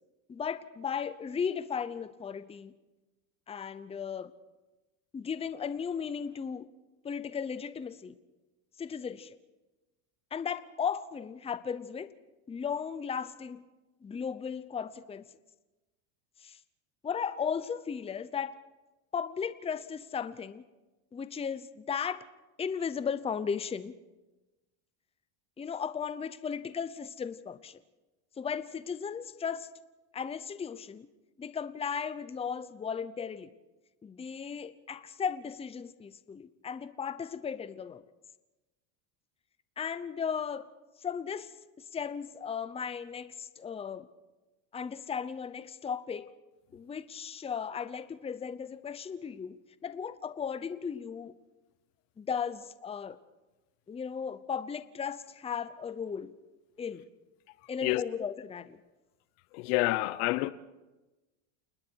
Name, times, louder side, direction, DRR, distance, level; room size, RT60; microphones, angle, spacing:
voice 1, 0.3-2.7 3.5-4.3 5.1-6.7 7.0-8.1 8.8-9.4 10.3-12.1 12.5-13.6 14.0-15.3 16.4-16.6 17.0-18.5 19.1-20.6 21.1-22.2 22.6-23.9 25.6-27.8 28.4-29.7 30.1-31.1 31.4-33.5 34.0-38.0 39.8-40.7 41.0-41.5 41.9-44.1 44.7-46.3 46.7-51.3 52.2-53.2 53.9-56.3 56.8-57.0 57.7-58.8, left 7 dB, 15° left, 0.7 m, -36 dB
voice 2, 59.5-60.5, left 19 dB, 75° left, 1.0 m, -28 dB
28.5 x 20.0 x 4.7 m
supercardioid pair, 135°, 44 cm